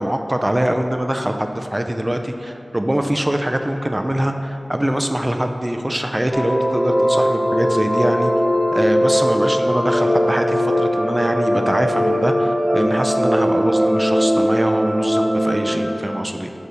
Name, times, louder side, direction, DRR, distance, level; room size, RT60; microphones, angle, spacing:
voice 1, 0.0-8.3 8.7-16.5, right 1 dB, 20° right, 5 dB, 0.4 m, -23 dB
sound 1, 6.3-15.8, equal, 20° left, 0.9 m, -19 dB
6.3 x 3.4 x 5.3 m, 2.8 s
wide cardioid pair, 60°, 0 cm